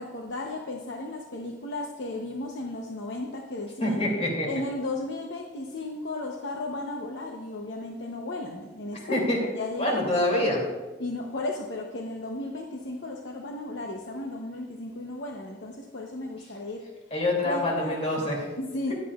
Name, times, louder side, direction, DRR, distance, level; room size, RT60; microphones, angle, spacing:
voice 1, 0.0-4.0 4.4-10.1 11.0-16.8 17.4-18.0 18.6-18.9, left 2 dB, 75° left, 1 dB, 0.9 m, -35 dB
voice 2, 3.8-4.5 8.9-9.4 9.8-10.6 17.1-18.5, left 1 dB, 35° left, -2 dB, 2.7 m, -26 dB
15.0 x 10.5 x 2.4 m, 1.2 s
head